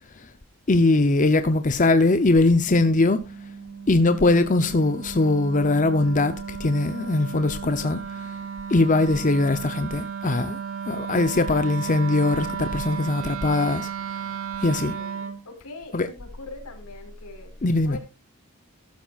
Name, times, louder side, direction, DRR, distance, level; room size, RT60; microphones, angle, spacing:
voice 1, 0.7-3.2 3.9-8.0 8.7-10.6 10.9-13.9 14.6-14.9 15.9-16.1 17.6-18.0, left 2 dB, 35° left, 0.7 m, -21 dB
Wind instrument woodwind instrument, 2.5-15.4, right 7 dB, 70° right, 2.5 m, -34 dB
voice 2, 14.7-17.5 17.8-18.0, left 2 dB, 90° left, 4.6 m, -42 dB
15.0 x 13.0 x 2.5 m
head